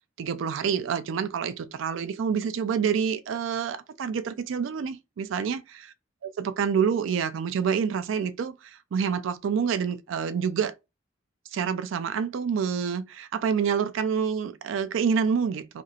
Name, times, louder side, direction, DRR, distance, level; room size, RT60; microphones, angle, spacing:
voice 1, 0.2-5.9 6.4-10.7 11.5-15.8, right 6 dB, 70° right, 0.3 m, -27 dB
2.8 x 2.4 x 2.7 m
head